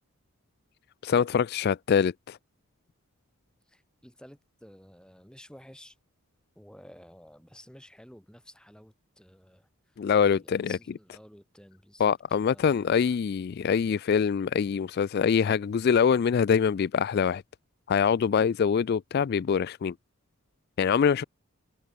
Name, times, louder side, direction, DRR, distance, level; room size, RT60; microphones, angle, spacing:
voice 1, 1.0-2.4 10.0-10.8 12.0-17.4 17.9-19.9 20.8-21.2, left 7 dB, 50° left, 0.3 m, -24 dB
voice 2, 3.7-6.0 6.5-13.2, equal, 5° left, 3.0 m, -53 dB
head